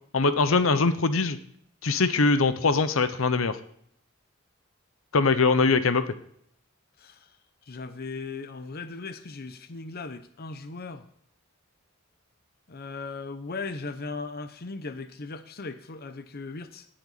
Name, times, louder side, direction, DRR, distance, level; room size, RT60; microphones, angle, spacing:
voice 1, 0.1-1.4 1.8-3.6 5.1-6.0, left 3 dB, 80° left, 12 dB, 0.8 m, -22 dB
voice 2, 7.0-7.3 7.7-11.1 12.7-17.0, left 3 dB, 50° left, 10 dB, 0.8 m, -38 dB
17.5 x 7.7 x 4.1 m, 0.66 s
head